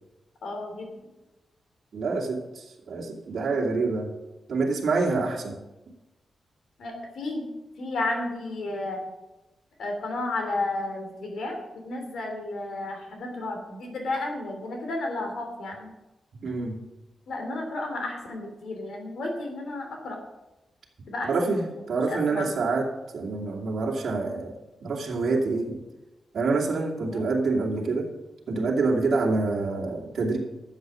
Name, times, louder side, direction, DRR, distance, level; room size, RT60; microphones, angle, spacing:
voice 1, 0.4-1.0 6.8-7.5 7.8-9.0 9.8-15.9 17.3-20.2 21.1-21.6 22.1-22.5 27.1-27.2, left 2 dB, 75° left, 3 dB, 3.0 m, -32 dB
voice 2, 1.9-4.1 4.5-5.6 16.4-16.8 21.2-25.8 26.3-28.1 28.5-30.4, right 3 dB, 60° right, -1 dB, 2.6 m, -27 dB
12.5 x 7.9 x 6.2 m, 1.0 s
wide cardioid pair, 165°, 0 cm